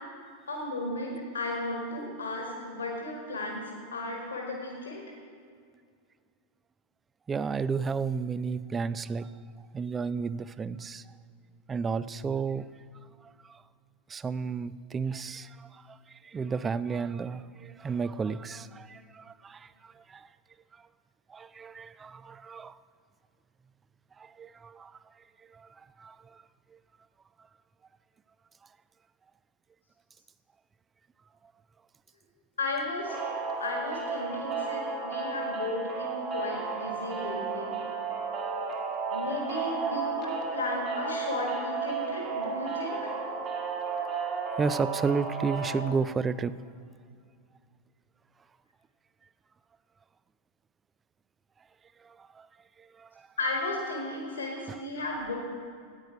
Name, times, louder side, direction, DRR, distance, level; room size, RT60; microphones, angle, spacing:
voice 1, 0.5-5.0 32.6-33.2 33.6-37.7 39.1-43.1 53.4-55.4, left 2 dB, 70° left, 0 dB, 1.7 m, -34 dB
voice 2, 7.3-9.3 9.7-11.0 11.7-12.7 13.2-13.6 14.1-20.3 21.3-22.8 24.2-24.9 25.5-25.7 26.0-26.4 44.6-46.6 52.0-52.5 52.8-53.1 54.7-54.8, right 5 dB, 20° right, 17 dB, 0.3 m, -32 dB
sound 1, 33.1-45.8, right 4 dB, 35° right, 1.7 m, -33 dB
13.5 x 9.3 x 4.8 m, 2.2 s
figure-of-eight pair, 90°, 0 cm